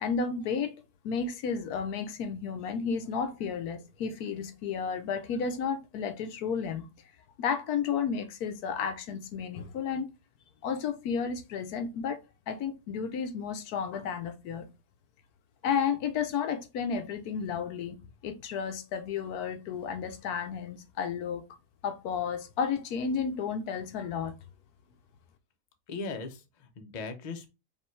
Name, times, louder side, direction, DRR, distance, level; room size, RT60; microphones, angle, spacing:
voice 1, 0.0-6.9 7.4-10.1 10.6-12.2 12.5-14.7 15.6-18.0 18.2-21.4 21.8-24.3, left 6 dB, 75° left, 1.1 m, -32 dB
voice 2, 25.9-27.5, left 3 dB, 40° left, 0.6 m, -38 dB
5.2 x 2.5 x 3.1 m
omnidirectional pair, 1.7 m